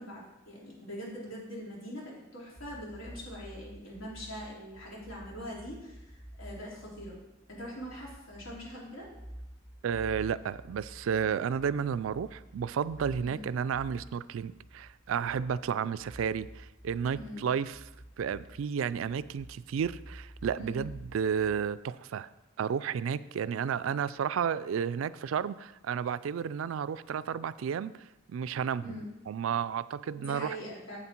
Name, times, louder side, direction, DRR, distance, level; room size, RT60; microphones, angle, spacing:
voice 1, 0.0-7.2 7.5-9.1 13.2-13.4 17.1-17.4 20.6-20.8 28.8-29.1 30.1-31.0, equal, 90° left, -5 dB, 3.4 m, -43 dB
sound 1, 2.6-21.8, equal, 5° left, 0.5 m, -50 dB
voice 2, 9.8-17.8 18.2-22.3 22.6-27.9 28.3-29.0 29.3-30.6, right 7 dB, 80° right, 16 dB, 0.3 m, -32 dB
8.1 x 7.7 x 4.4 m, 0.98 s
head